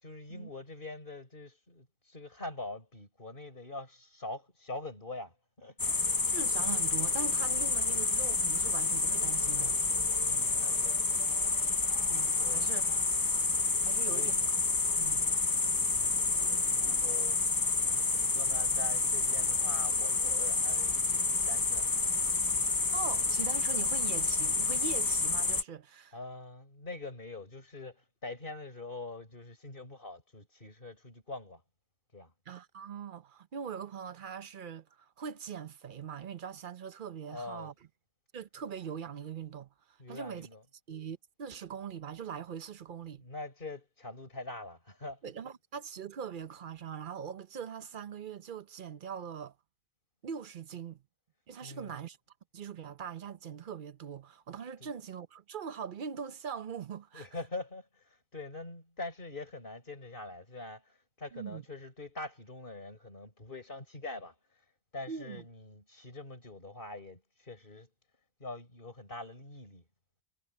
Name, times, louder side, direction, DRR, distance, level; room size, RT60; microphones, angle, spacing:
voice 1, 0.0-5.8 10.2-11.2 12.4-12.7 13.8-14.4 15.9-17.4 17.8-21.9 26.1-31.6 32.1-32.3 37.3-37.7 40.0-40.6 43.2-45.2 51.6-51.9 54.8-54.9 57.1-64.3 64.9-67.9 68.4-69.8, left 2 dB, 50° left, 5.2 m, -44 dB
sound 1, 5.8-25.6, left 3 dB, 25° left, 0.5 m, -29 dB
voice 2, 6.3-9.8 12.0-12.8 13.8-14.4 14.9-15.2 22.9-26.2 32.5-37.7 38.3-39.7 40.1-40.5 40.9-43.2 45.2-49.5 50.2-51.0 51.5-52.2 52.5-57.3 61.3-61.6 65.1-65.4, right 7 dB, 50° right, 0.9 m, -42 dB
omnidirectional pair, 1.2 m